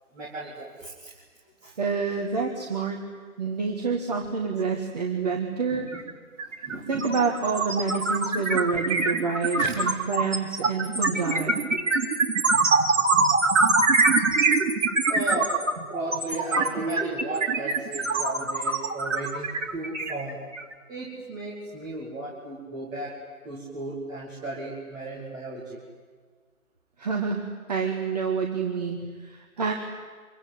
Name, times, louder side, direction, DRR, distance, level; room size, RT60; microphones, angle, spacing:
voice 1, 0.1-1.1 1.6-1.7 5.7-6.0 6.6-7.1 9.6-9.7 14.6-14.8 15.1-20.4 20.9-23.1 23.4-25.8, right 2 dB, 10° right, -7 dB, 2.4 m, -35 dB
voice 2, 1.8-3.0 3.4-5.9 6.9-11.6 27.0-29.7, right 5 dB, 25° right, 1 dB, 1.8 m, -28 dB
sound 1, 5.9-6.1 6.4-20.7, right 3 dB, 55° right, 2.9 m, -24 dB
26.0 x 23.5 x 9.6 m, 1.5 s
figure-of-eight pair, 150°, 44 cm